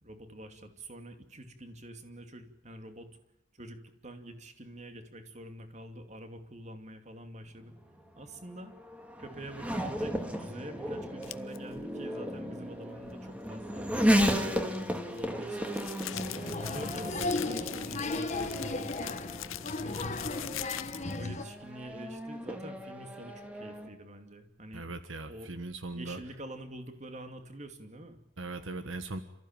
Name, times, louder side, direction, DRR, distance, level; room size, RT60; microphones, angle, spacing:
voice 1, 0.0-3.1 3.5-7.7 8.2-8.7 9.2-16.0 16.6-19.2 19.8-20.5 21.2-24.9 25.3-25.5 25.9-28.2, right 1 dB, 35° right, 7 dB, 2.7 m, -46 dB
Race car auto racing / Accelerating revving vroom, 7.6-23.9, equal, 5° right, 2.3 m, -34 dB
sound 1, 11.2-11.6 14.7-21.2, left 12 dB, 80° left, 0.8 m, -42 dB
Applause, 16.1-21.4, left 2 dB, 35° left, 1.5 m, -35 dB
voice 2, 24.7-26.2 28.4-29.2, right 2 dB, 70° right, 10 dB, 1.5 m, -39 dB
28.5 x 15.0 x 9.1 m, 0.86 s
head